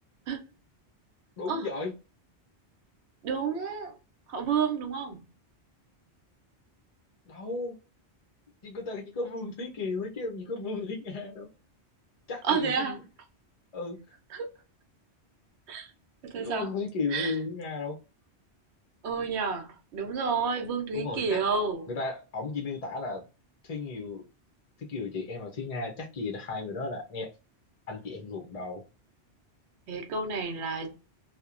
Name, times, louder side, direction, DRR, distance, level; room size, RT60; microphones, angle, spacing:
voice 1, 1.4-1.9 7.3-7.8 8.6-11.5 12.3-13.0 13.7-14.0 16.3-18.0 20.9-21.4 21.9-23.2 23.6-24.2 24.8-27.3 27.9-28.8, left 3 dB, 50° left, 0.4 m, -34 dB
voice 2, 3.2-3.9 4.3-5.2 12.4-12.9 14.3-14.5 15.7-15.9 16.3-16.7 17.1-17.3 19.0-21.8 29.9-30.9, right 5 dB, 75° right, 0.9 m, -30 dB
2.8 x 2.0 x 2.4 m
omnidirectional pair, 1.1 m